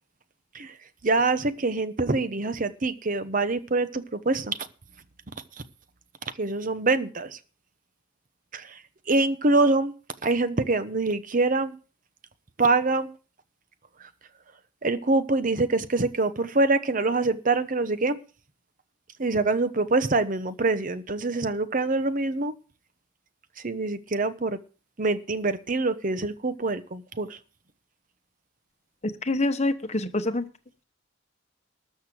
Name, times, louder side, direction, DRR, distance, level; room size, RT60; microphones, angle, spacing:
voice 1, 1.0-4.7 6.4-7.4 8.5-8.8 9.1-9.9 10.2-11.8 12.6-13.1 14.0-14.1 14.8-18.2 19.2-22.5 23.6-24.6 25.0-27.4, right 3 dB, 40° right, 0.9 m, -25 dB
voice 2, 29.0-30.5, left 2 dB, 35° left, 1.0 m, -26 dB
13.0 x 6.5 x 7.6 m
head